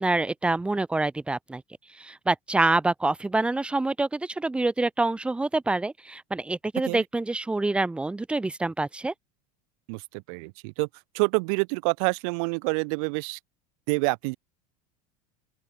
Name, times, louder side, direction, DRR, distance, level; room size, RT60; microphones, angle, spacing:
voice 1, 0.0-1.6 2.0-9.1, right 2 dB, 5° right, 0.3 m, -26 dB
voice 2, 9.9-10.9 11.1-13.4 13.9-14.4, right 33 dB, 70° right, 0.6 m, -27 dB
open air
supercardioid pair, 115°, 18 cm